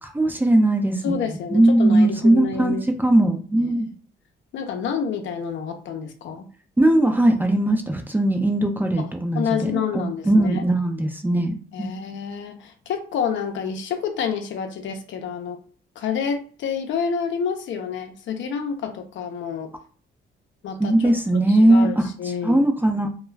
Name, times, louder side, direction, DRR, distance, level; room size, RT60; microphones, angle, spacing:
voice 1, 0.0-1.1 1.5-3.9 6.8-12.0 20.8-22.1 22.4-23.1, right 1 dB, 10° right, 4 dB, 0.4 m, -19 dB
voice 2, 1.0-2.8 4.5-6.5 9.0-9.1 9.3-10.6 11.7-15.6 16.0-19.7 20.6-22.6, left 6 dB, 70° left, 5 dB, 0.6 m, -28 dB
2.3 x 2.2 x 3.2 m, 0.42 s
cardioid pair, 90°, 20 cm